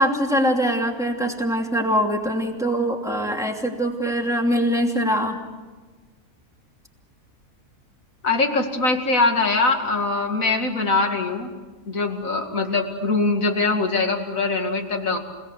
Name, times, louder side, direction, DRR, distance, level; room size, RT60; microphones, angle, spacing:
voice 1, 0.0-5.4, equal, ahead, 1 dB, 2.8 m, -22 dB
voice 2, 8.2-11.5 11.9-15.2, left 3 dB, 60° left, 4 dB, 2.7 m, -22 dB
29.5 x 18.0 x 8.1 m, 1.4 s
omnidirectional pair, 1.6 m